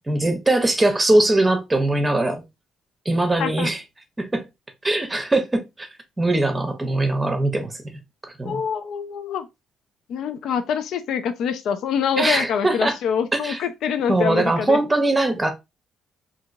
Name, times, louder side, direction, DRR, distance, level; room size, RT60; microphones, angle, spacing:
voice 1, 0.1-2.4 3.1-3.8 4.2-4.4 4.8-5.9 6.2-7.8 8.2-8.6 12.2-13.0 13.3-13.6 14.1-15.5, right 2 dB, 20° right, 0.7 m, -21 dB
voice 2, 3.4-3.7 8.4-9.5 10.1-14.8, left 7 dB, 75° left, 0.3 m, -25 dB
2.8 x 2.7 x 2.5 m
cardioid pair, 90°, 0 cm